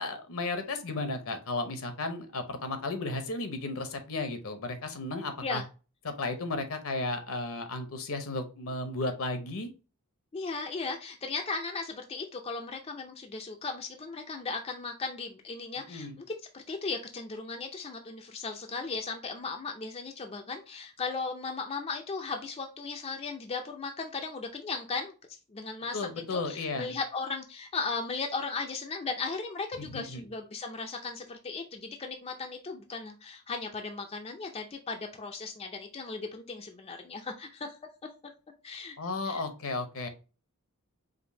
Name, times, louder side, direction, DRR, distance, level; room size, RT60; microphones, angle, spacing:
voice 1, 0.0-5.6 6.0-9.7 15.8-16.2 25.9-26.9 29.8-30.3 39.0-40.1, left 2 dB, 65° left, 8 dB, 0.8 m, -34 dB
voice 2, 10.3-16.3 16.5-25.1 25.5-37.8 38.0-38.1 38.6-39.0 39.3-39.4, left 4 dB, 25° left, 3 dB, 0.4 m, -36 dB
5.1 x 2.6 x 2.7 m, 0.33 s
head